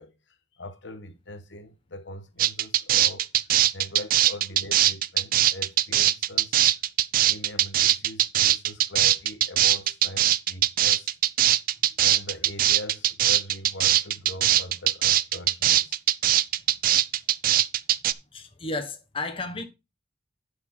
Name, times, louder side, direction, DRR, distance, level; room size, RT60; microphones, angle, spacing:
voice 1, 0.0-3.3 3.7-6.6 7.3-11.1 12.0-16.0, left 1 dB, 70° left, 1.3 m, -41 dB
sound 1, 2.4-18.1, right 12 dB, 50° right, 0.5 m, -21 dB
voice 2, 18.3-19.7, left 2 dB, 30° left, 1.3 m, -33 dB
11.0 x 5.0 x 4.4 m
head